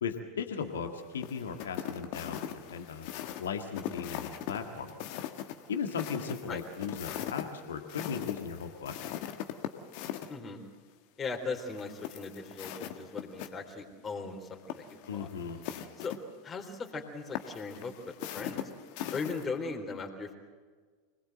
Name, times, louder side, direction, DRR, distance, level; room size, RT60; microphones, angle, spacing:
voice 1, 0.0-3.1 3.4-5.1 5.7-9.1 15.1-15.6, left 6 dB, 70° left, 5 dB, 1.8 m, -37 dB
sound 1, 1.2-10.3 11.7-13.5 13.8-13.9 14.6-16.2 17.3-19.4, left 11 dB, 55° left, 1.6 m, -40 dB
voice 2, 10.3-10.6 11.2-15.3 16.0-16.2 16.4-18.6 19.1-20.4, left 4 dB, 25° left, 2 dB, 3.7 m, -38 dB
25.5 x 20.0 x 7.8 m, 1.5 s
figure-of-eight pair, 85°, 0 cm